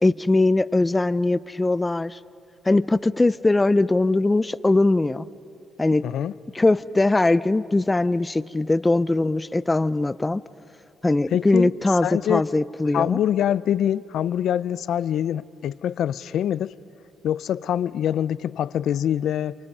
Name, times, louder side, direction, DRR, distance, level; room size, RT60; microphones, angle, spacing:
voice 1, 0.0-2.2 2.7-5.3 5.8-6.1 6.5-10.4 11.0-13.2, left 2 dB, 15° left, 17 dB, 0.5 m, -21 dB
voice 2, 6.0-6.3 11.3-11.7 12.0-12.4 12.9-16.7 17.2-19.6, left 10 dB, 70° left, 17 dB, 0.5 m, -24 dB
29.5 x 27.5 x 5.5 m, 2.5 s
cardioid pair, 90°, 0 cm